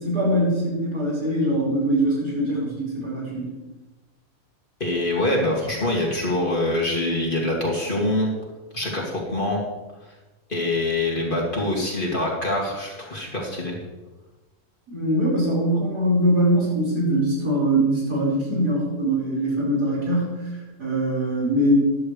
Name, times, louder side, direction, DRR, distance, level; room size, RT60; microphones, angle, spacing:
voice 1, 0.0-3.5 14.9-20.4 20.8-21.9, right 1 dB, 80° right, -6 dB, 5.6 m, -22 dB
voice 2, 4.8-8.3 8.7-9.6 10.5-13.8, left 1 dB, 35° left, -2 dB, 2.5 m, -24 dB
14.5 x 11.0 x 3.3 m, 1.1 s
omnidirectional pair, 1.7 m